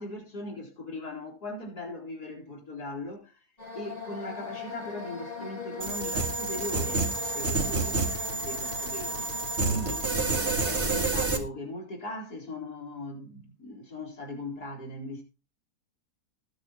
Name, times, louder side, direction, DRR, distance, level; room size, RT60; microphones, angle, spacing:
voice 1, 0.0-3.5 3.7-9.3 9.7-15.2, left 1 dB, 65° left, 4.7 m, -39 dB
sound 1, 3.6-11.1, left 4 dB, 20° left, 2.9 m, -40 dB
sound 2, 5.8-11.4, right 3 dB, 40° right, 2.4 m, -29 dB
19.5 x 8.7 x 3.0 m
omnidirectional pair, 1.8 m